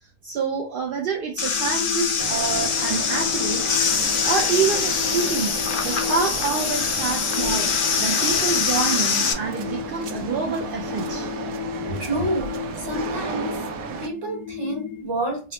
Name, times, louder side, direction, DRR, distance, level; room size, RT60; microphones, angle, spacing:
voice 1, 0.2-3.7 4.2-11.3, right 5 dB, 65° right, 0.5 m, -27 dB
sound 1, 1.4-15.0, left 9 dB, 85° left, 1.0 m, -34 dB
sound 2, 1.4-9.3, left 6 dB, 65° left, 0.5 m, -24 dB
sound 3, 2.2-14.1, right 5 dB, 85° right, 1.0 m, -34 dB
voice 2, 11.9-13.6 14.0-15.5, right 1 dB, 20° right, 1.0 m, -29 dB
3.7 x 2.0 x 2.9 m
omnidirectional pair, 1.4 m